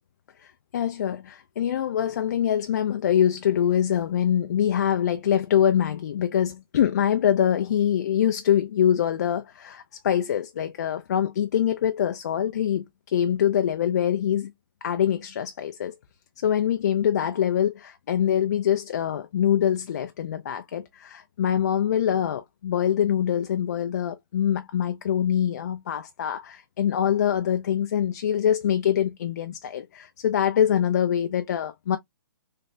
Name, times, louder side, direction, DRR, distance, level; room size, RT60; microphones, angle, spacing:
voice 1, 0.4-14.5 14.8-15.9 16.4-32.0, left 9 dB, 50° left, 0.4 m, -24 dB
3.2 x 3.0 x 2.4 m
hypercardioid pair, 170°, 12 cm